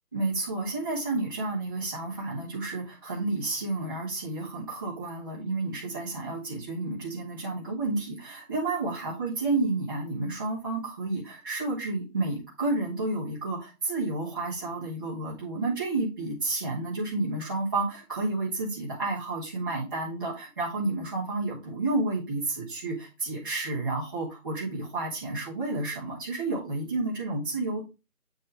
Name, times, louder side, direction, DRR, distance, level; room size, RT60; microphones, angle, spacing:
voice 1, 0.1-27.9, right 2 dB, 15° right, -10 dB, 1.2 m, -31 dB
8.5 x 4.2 x 3.3 m, 0.27 s
figure-of-eight pair, 170°, 46 cm